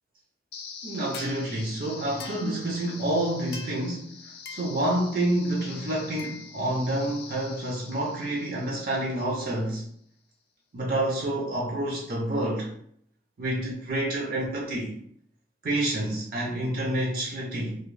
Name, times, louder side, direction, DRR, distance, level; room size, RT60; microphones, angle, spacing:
sound 1, 0.5-9.5, left 5 dB, 60° left, 0.3 m, -43 dB
voice 1, 0.8-9.9 10.7-12.7 13.4-15.0 15.6-17.8, right 1 dB, 50° right, -3 dB, 0.5 m, -28 dB
2.2 x 2.1 x 3.1 m, 0.67 s
head